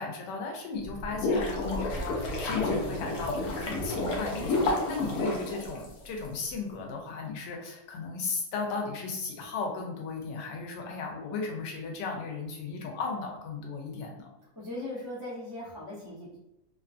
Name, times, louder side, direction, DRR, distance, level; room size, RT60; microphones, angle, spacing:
voice 1, 0.0-14.3, left 4 dB, 85° left, 1 dB, 1.2 m, -36 dB
sound 1, 0.8-6.3, left 2 dB, 70° left, 1.0 m, -30 dB
voice 2, 14.4-16.4, left 1 dB, 30° left, -8 dB, 0.3 m, -39 dB
2.9 x 2.4 x 2.4 m, 0.90 s
omnidirectional pair, 1.8 m